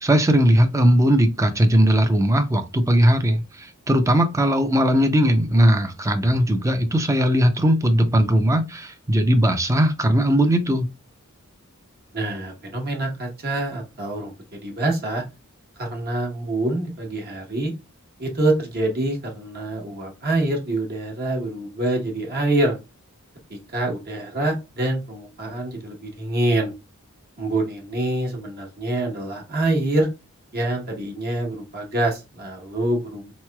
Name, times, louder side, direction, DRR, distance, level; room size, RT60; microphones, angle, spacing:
voice 1, 0.0-10.9, equal, 15° right, 0.4 m, -19 dB
voice 2, 12.1-15.2 15.8-17.7 18.2-22.8 23.5-26.7 27.4-30.1 30.5-33.3, right 2 dB, 45° right, 1.1 m, -25 dB
3.8 x 3.0 x 2.2 m
head